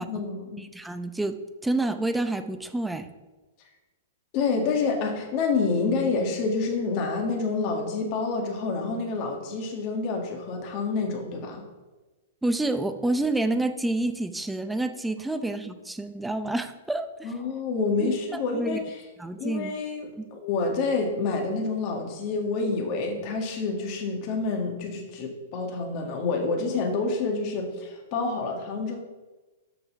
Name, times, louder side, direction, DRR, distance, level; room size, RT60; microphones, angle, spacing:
voice 1, 0.0-0.6 4.3-11.6 17.2-19.0 19.4-29.0, left 4 dB, 40° left, 2 dB, 1.8 m, -28 dB
voice 2, 0.6-1.3 1.6-3.1 12.4-17.3 18.0-18.8 19.2-19.8 20.2-20.3, right 2 dB, 5° right, 9 dB, 0.6 m, -28 dB
6.6 x 6.2 x 5.9 m, 1.2 s
hypercardioid pair, 130°, 0 cm